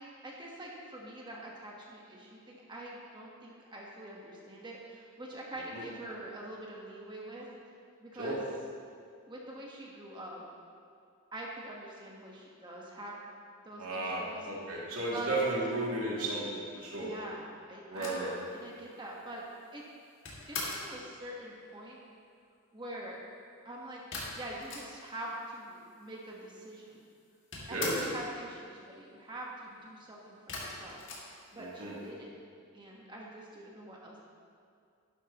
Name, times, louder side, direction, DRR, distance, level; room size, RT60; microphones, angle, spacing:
voice 1, 0.0-7.5 8.0-8.4 9.3-10.4 11.3-13.2 13.6-15.3 16.9-18.3 18.5-19.4 19.7-19.9 20.5-22.0 22.7-23.2 23.6-24.0 24.3-27.1 27.7-31.0 31.5-32.4 32.7-34.2, right 1 dB, 20° right, -3 dB, 1.4 m, -45 dB
voice 2, 13.8-17.1 17.9-18.3 27.7-27.9 31.5-31.9, right 2 dB, 85° right, -6 dB, 2.6 m, -34 dB
sound 1, 17.9-21.0 24.1-25.3 25.6-25.7 25.8-26.6 26.9-28.2 30.5-32.0, left 3 dB, 60° left, 2.2 m, -41 dB
11.5 x 11.5 x 3.0 m, 2.4 s
head